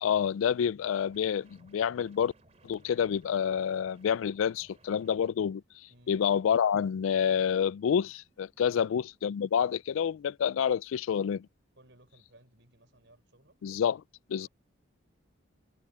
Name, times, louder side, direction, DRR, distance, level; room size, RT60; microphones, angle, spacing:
voice 1, 0.0-2.3 2.6-5.6 6.1-11.5 13.6-14.0 14.3-14.5, left 8 dB, 90° left, 0.3 m, -28 dB
sound 1, 0.9-5.3, right 2 dB, 35° right, 2.8 m, -62 dB
sound 2, 1.1-9.5, equal, 70° left, 7.8 m, -76 dB
voice 2, 11.8-13.6 14.4-14.5, right 1 dB, 60° right, 5.8 m, -60 dB
head